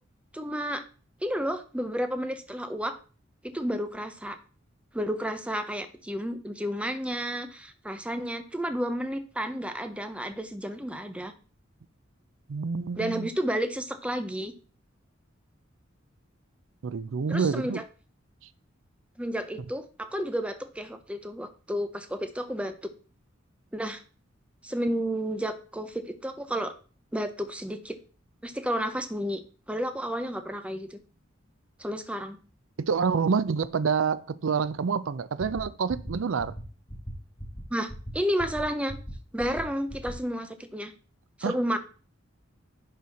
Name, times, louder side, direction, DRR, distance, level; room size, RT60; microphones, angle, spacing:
voice 1, 0.3-0.8 1.2-3.0 3.4-4.4 4.9-11.3 13.0-14.5 17.3-17.9 19.2-22.9 23.7-24.0 24.6-26.7 27.1-28.0 28.4-29.4 29.7-31.0 31.8-32.4 37.7-38.9 39.3-40.9 41.4-41.8, equal, 5° right, 0.7 m, -31 dB
voice 2, 12.5-13.3 16.8-17.8 32.8-36.6 41.4-41.6, right 5 dB, 80° right, 0.5 m, -27 dB
sound 1, 35.4-35.6 35.9-36.1 36.4-36.6 36.9-37.1 37.4-37.6 37.9-38.1 38.4-38.6 38.9-39.1 39.4-39.6 39.9-40.1, equal, 20° left, 1.6 m, -38 dB
10.5 x 4.1 x 4.2 m
head